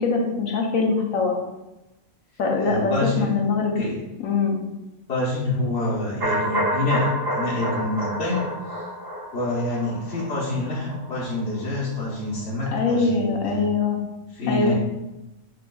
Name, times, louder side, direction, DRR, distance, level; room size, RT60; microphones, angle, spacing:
voice 1, 0.0-1.4 2.4-3.8 4.2-4.6 12.7-14.0 14.5-14.7, left 4 dB, 75° left, 1 dB, 1.1 m, -23 dB
voice 2, 2.6-3.3 3.7-3.9 5.1-8.4 9.3-13.6 14.3-14.7, left 2 dB, 55° left, -8 dB, 1.1 m, -27 dB
sound 1, 6.2-12.1 12.4-12.5, equal, 25° right, 0.5 m, -29 dB
5.1 x 3.4 x 2.3 m, 0.99 s
omnidirectional pair, 1.4 m